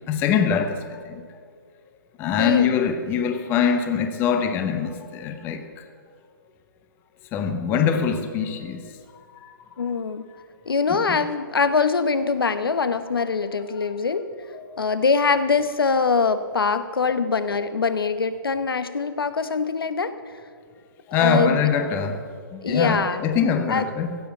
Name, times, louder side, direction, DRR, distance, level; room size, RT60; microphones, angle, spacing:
voice 1, 0.1-1.2 2.2-5.8 7.3-8.9 9.3-9.6 10.9-11.2 13.7-13.9 14.5-14.9 21.1-24.2, left 6 dB, 15° left, 0.8 m, -24 dB
voice 2, 2.4-2.7 9.8-10.2 10.7-14.3 14.8-20.1 21.2-21.6 22.6-23.2 23.7-23.8, left 5 dB, 85° left, 1.0 m, -23 dB
16.0 x 8.0 x 7.1 m
hypercardioid pair, 155°, 12 cm